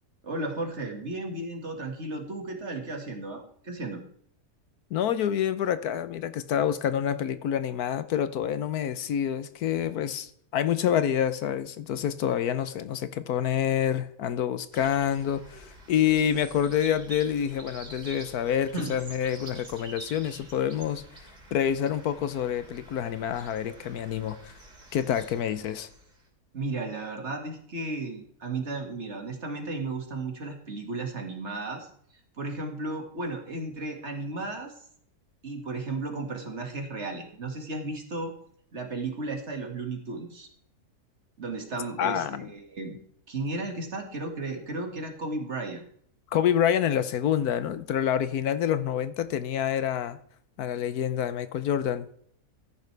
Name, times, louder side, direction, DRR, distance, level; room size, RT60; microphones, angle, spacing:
voice 1, 0.2-4.0 18.7-18.9 26.5-31.9 32.4-34.7 35.4-38.3 38.7-40.5 41.4-43.0 43.3-45.8, right 2 dB, 45° right, 3 dB, 2.2 m, -34 dB
voice 2, 4.9-21.0 21.5-24.5 24.9-25.9 42.0-42.5 46.3-50.2 50.6-52.1, left 9 dB, 75° left, 13 dB, 1.2 m, -27 dB
sound 1, 14.7-26.2, right 2 dB, 90° right, 4.0 m, -47 dB
14.0 x 10.5 x 3.3 m, 0.64 s
omnidirectional pair, 1.7 m